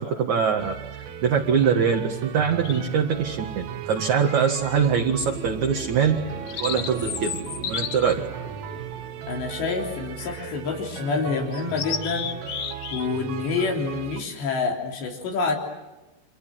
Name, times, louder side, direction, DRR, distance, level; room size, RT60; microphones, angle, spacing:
voice 1, 0.0-6.2 6.6-7.3 7.7-8.3, right 7 dB, 55° right, 1 dB, 2.7 m, -23 dB
sound 1, 0.6-14.2, right 10 dB, 70° right, 1.7 m, -37 dB
sound 2, 2.6-3.1 4.2-4.9 5.3-5.5 6.0-9.5 10.2-10.7 11.0-11.1 11.5-13.1 13.4-13.6, left 8 dB, 70° left, 1.5 m, -34 dB
sound 3, 5.2-10.8, right 3 dB, 85° right, 5.6 m, -40 dB
voice 2, 9.3-12.3 12.9-15.6, left 4 dB, 85° left, 0 dB, 5.6 m, -27 dB
30.0 x 26.0 x 7.7 m, 1.1 s
omnidirectional pair, 4.9 m